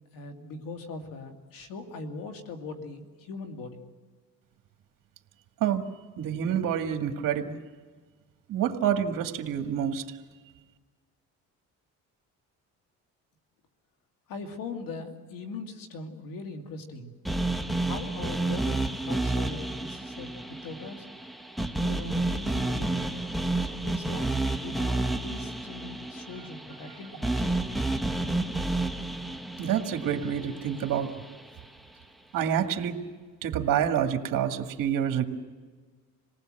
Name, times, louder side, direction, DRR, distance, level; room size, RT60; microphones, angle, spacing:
voice 1, 0.1-3.8 14.3-17.1 17.8-21.0 21.8-23.1 23.8-24.3 24.6-27.6, left 3 dB, 80° left, 5 dB, 2.6 m, -40 dB
voice 2, 6.2-7.6 8.5-10.2 29.6-31.1 32.3-33.0 33.4-35.2, right 9 dB, 70° right, 5 dB, 2.0 m, -27 dB
sound 1, 17.3-31.4, right 2 dB, ahead, 1.2 m, -30 dB
27.0 x 19.0 x 7.8 m, 1.5 s
cardioid pair, 100°, 33 cm